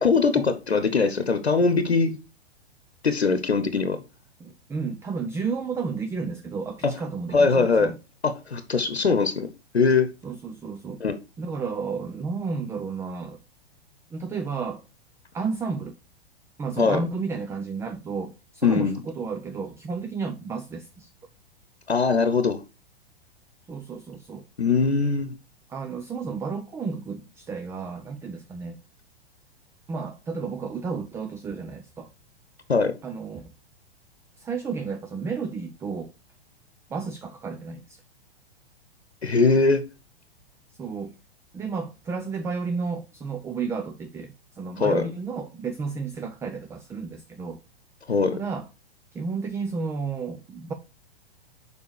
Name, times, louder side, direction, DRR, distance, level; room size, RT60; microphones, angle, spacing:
voice 1, 0.0-2.2 3.0-4.0 6.8-6.9 7.3-7.9 8.2-9.5 9.7-10.1 11.0-11.1 16.8-17.0 18.6-19.0 21.9-22.6 24.6-25.3 32.7-32.9 39.2-39.9 44.8-45.1 48.1-48.3, left 4 dB, 85° left, 1.0 m, -21 dB
voice 2, 4.4-8.0 10.2-11.0 11.4-13.4 14.1-14.8 15.3-16.0 16.6-21.1 23.7-24.4 25.7-28.8 29.9-32.1 33.0-33.5 34.4-36.1 36.9-38.0 40.8-41.1 41.5-47.6 48.3-48.7 49.1-50.7, right 5 dB, 10° right, 0.4 m, -32 dB
6.9 x 5.1 x 4.7 m
figure-of-eight pair, 105°, 31 cm